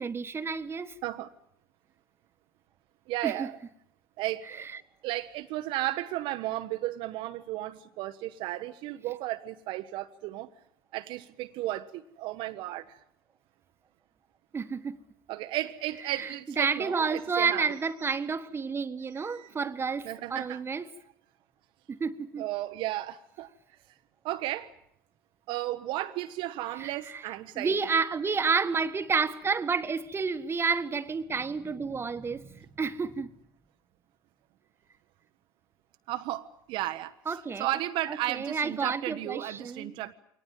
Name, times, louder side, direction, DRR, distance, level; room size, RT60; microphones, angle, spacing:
voice 1, 0.0-0.9 3.2-3.3 14.5-15.0 16.2-16.3 16.6-20.8 21.9-22.4 27.1-27.2 27.5-33.3 37.3-37.7 38.3-39.9, right 5 dB, 25° right, 1.3 m, -30 dB
voice 2, 1.0-1.3 3.1-3.6 4.2-4.7 5.0-10.5 10.9-13.0 15.3-17.7 19.1-19.5 20.0-20.6 22.4-23.5 24.2-24.7 25.5-27.9 36.1-40.1, right 15 dB, 55° right, 0.9 m, -34 dB
23.5 x 18.5 x 9.3 m
figure-of-eight pair, 70°, 10 cm